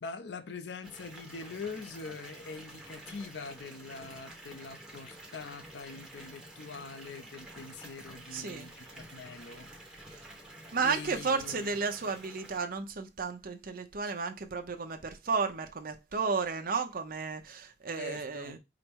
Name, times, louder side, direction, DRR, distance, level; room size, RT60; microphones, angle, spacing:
voice 1, 0.0-9.7 10.8-11.7 18.0-18.6, left 4 dB, 70° left, 0.6 m, -43 dB
Water tap faucet / Bathtub (filling or washing) / Fill (with liquid), 0.8-12.6, right 1 dB, 5° right, 1.0 m, -49 dB
voice 2, 8.3-8.7 10.7-18.6, right 4 dB, 55° right, 0.7 m, -33 dB
4.9 x 2.1 x 4.5 m
head